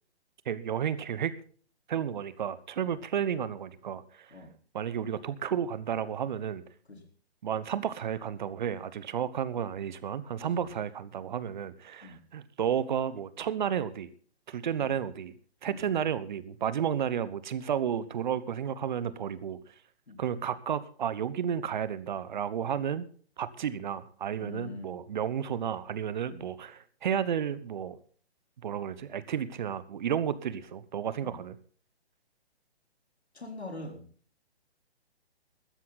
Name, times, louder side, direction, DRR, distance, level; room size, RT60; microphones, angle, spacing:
voice 1, 0.5-1.3 1.9-4.3 4.7-6.6 7.4-14.1 14.5-15.3 15.6-19.6 20.2-23.1 23.4-28.0 28.6-31.6, right 8 dB, 45° right, 16 dB, 1.1 m, -32 dB
voice 2, 10.4-10.7 12.0-12.2 14.8-14.9 15.7-15.8 20.1-20.2 24.4-24.9 26.3-26.4 31.2-31.4 33.3-34.1, left 3 dB, 80° left, 3 dB, 4.3 m, -43 dB
15.0 x 13.0 x 4.1 m, 0.44 s
figure-of-eight pair, 135°, 32 cm